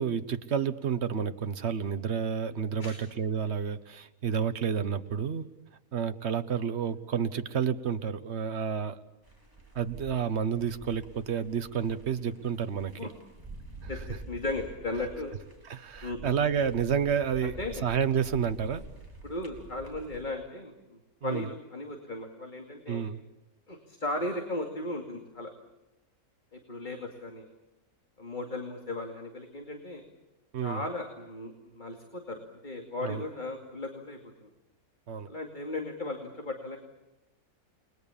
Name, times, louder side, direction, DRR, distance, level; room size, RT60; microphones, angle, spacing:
voice 1, 0.0-5.5 5.9-9.0 9.7-12.9 15.7-17.5 17.8-18.8 21.2-21.5 22.9-23.2 30.5-30.8 33.0-33.2 35.1-35.3, right 7 dB, 50° right, 11 dB, 1.3 m, -30 dB
sound 1, 9.2-20.3, right 1 dB, 15° right, 3.7 m, -47 dB
voice 2, 13.9-15.4 16.0-16.2 17.4-17.9 19.2-23.1 23.7-25.5 26.5-27.4 28.2-30.0 30.6-34.5 35.3-36.8, left 2 dB, 30° left, 3 dB, 2.5 m, -36 dB
30.0 x 21.5 x 7.2 m, 1.0 s
omnidirectional pair, 1.6 m